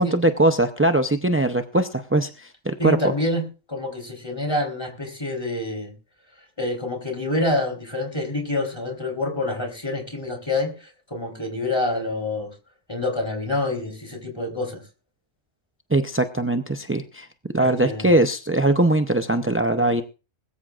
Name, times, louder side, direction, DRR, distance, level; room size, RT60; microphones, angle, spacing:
voice 1, 0.0-3.1 15.9-17.3 17.5-20.0, right 2 dB, 20° right, 7 dB, 0.3 m, -21 dB
voice 2, 2.8-5.9 6.6-12.5 12.9-14.8 17.6-18.1, left 2 dB, 20° left, 3 dB, 3.8 m, -27 dB
21.0 x 14.0 x 2.4 m, 0.33 s
omnidirectional pair, 1.3 m